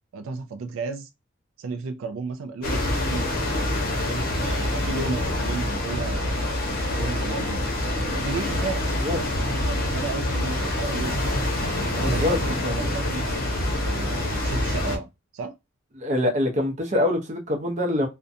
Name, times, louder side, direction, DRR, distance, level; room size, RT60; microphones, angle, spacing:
voice 1, 0.1-1.1 1.6-3.3 3.8-7.6 8.1-11.2 12.0-15.5, right 4 dB, 85° right, 0.3 m, -34 dB
sound 1, 2.6-15.0, left 1 dB, 45° left, 0.7 m, -26 dB
voice 2, 12.0-12.4 12.6-12.8 16.0-18.1, left 1 dB, 35° right, 0.6 m, -24 dB
2.4 x 2.1 x 2.6 m
head